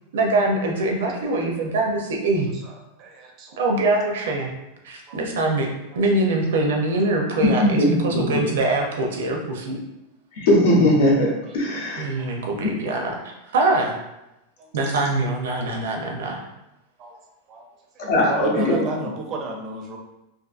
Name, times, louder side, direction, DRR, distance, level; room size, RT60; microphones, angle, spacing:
voice 1, 0.1-2.5 3.6-4.5 4.8-5.7 6.0-9.8 12.0-13.9 14.7-16.4, right 2 dB, 85° right, 1 dB, 0.5 m, -23 dB
voice 2, 2.6-3.6 5.1-5.2 8.2-8.5 12.2-12.5 14.6-14.7 17.0-17.1 17.5-17.7 17.9-20.0, right 3 dB, 30° right, 1 dB, 0.4 m, -34 dB
voice 3, 7.4-8.4 10.4-12.1 12.6-12.7 18.0-18.9, left 1 dB, 65° left, -2 dB, 0.7 m, -19 dB
2.5 x 2.5 x 2.4 m, 0.91 s
supercardioid pair, 165°, 0 cm